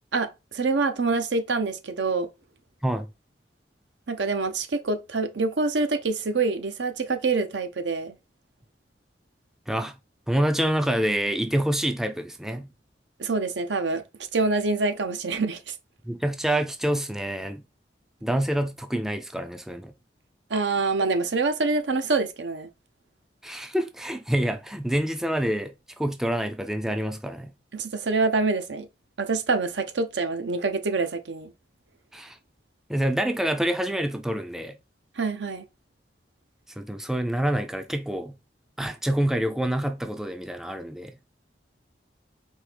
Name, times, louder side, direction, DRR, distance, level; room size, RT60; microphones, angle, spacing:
voice 1, 0.5-2.3 4.1-8.1 13.2-14.0 14.3-15.7 20.5-22.7 27.7-28.9 29.2-31.5 35.2-35.6, right 3 dB, 85° right, 0.8 m, -26 dB
voice 2, 9.7-10.0 10.3-12.7 16.0-17.6 18.2-19.9 23.4-27.5 32.1-32.4 32.9-34.8 36.8-38.4 38.8-41.1, right 1 dB, 5° right, 0.4 m, -27 dB
4.5 x 2.9 x 3.4 m
head